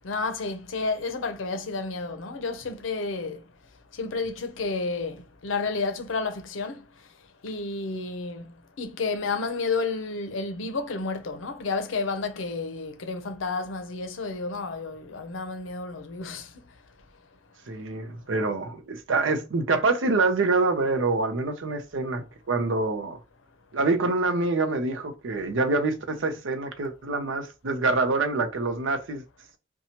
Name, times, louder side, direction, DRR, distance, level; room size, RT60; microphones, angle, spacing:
voice 1, 0.0-3.4 3.9-6.8 7.4-16.5, left 3 dB, 85° left, 0.6 m, -31 dB
voice 2, 17.7-23.2 23.7-29.2, right 3 dB, 80° right, 0.6 m, -26 dB
2.8 x 2.2 x 2.9 m
head